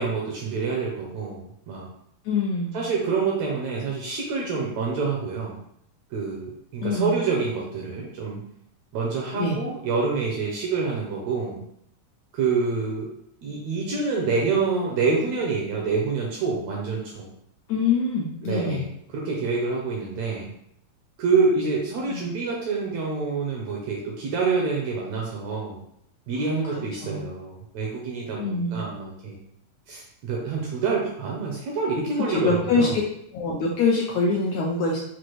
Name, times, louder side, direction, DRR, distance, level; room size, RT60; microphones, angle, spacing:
voice 1, 0.0-1.9 2.7-5.6 6.1-8.4 8.9-11.6 12.3-13.1 13.4-17.3 18.4-18.9 19.1-20.5 21.2-25.8 26.3-29.3 29.9-32.9, right 4 dB, 80° right, -2 dB, 1.6 m, -27 dB
voice 2, 2.2-2.8 6.8-7.2 9.3-9.6 17.7-18.9 22.1-22.2 26.6-26.7 27.0-27.2 28.4-28.8 32.3-33.0 33.3-35.0, left 4 dB, 85° left, -2 dB, 1.6 m, -24 dB
5.8 x 2.5 x 3.1 m, 0.73 s
omnidirectional pair, 3.8 m